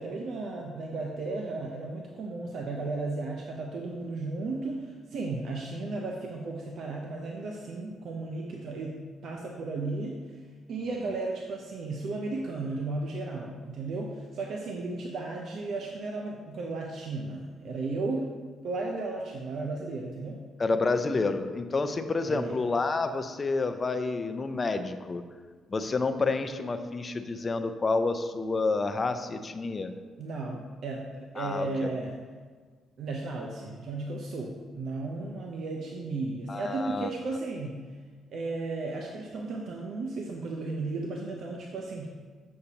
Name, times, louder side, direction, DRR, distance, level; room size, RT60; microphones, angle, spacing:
voice 1, 0.0-10.1 10.7-18.3 18.6-20.4 22.3-22.6 30.2-32.2 33.0-37.7 38.3-42.1, right 3 dB, 70° right, 0 dB, 0.7 m, -34 dB
voice 2, 20.6-25.2 25.7-29.9 31.4-31.9 36.5-37.1, left 3 dB, 35° left, 8 dB, 0.5 m, -29 dB
7.9 x 6.5 x 2.9 m, 1.5 s
cardioid pair, 90°, 0 cm